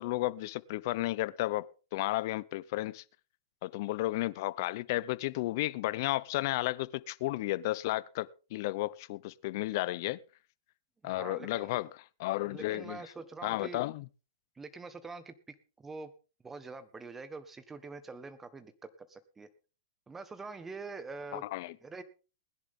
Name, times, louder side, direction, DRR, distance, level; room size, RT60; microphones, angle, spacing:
voice 1, 0.0-3.0 3.6-10.2 11.0-11.9 12.2-13.0 13.4-14.0 21.3-21.7, left 18 dB, 50° left, 0.7 m, -33 dB
voice 2, 11.0-11.8 12.4-13.8 14.6-16.1 16.4-19.5 20.1-21.4 21.8-22.0, right 4 dB, 10° right, 1.4 m, -45 dB
20.0 x 10.5 x 3.7 m
hypercardioid pair, 140°, 2 cm